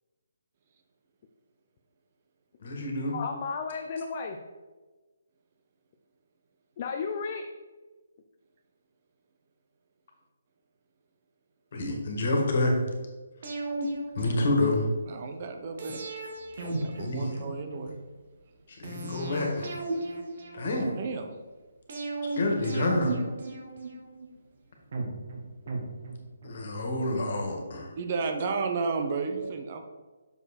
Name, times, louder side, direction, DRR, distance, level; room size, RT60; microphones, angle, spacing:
voice 1, 2.6-3.2 11.7-12.8 14.2-14.8 17.0-17.4 18.7-19.7 20.5-20.9 22.4-23.1 26.4-27.9, left 2 dB, 55° left, 1 dB, 1.8 m, -28 dB
voice 2, 3.1-4.4 6.8-7.5 16.6-16.7, left 5 dB, 40° left, 4 dB, 0.6 m, -33 dB
sound 1, 13.4-15.0 15.8-17.9 18.8-21.1 21.9-24.3 24.9-26.6 26.9-27.0, right 2 dB, 55° right, 1.6 m, -35 dB
voice 3, 15.1-16.0 16.6-18.0 20.7-21.3 27.9-29.8, right 4 dB, 40° right, 5 dB, 0.8 m, -32 dB
6.8 x 4.9 x 4.3 m, 1.3 s
hypercardioid pair, 155°, 0 cm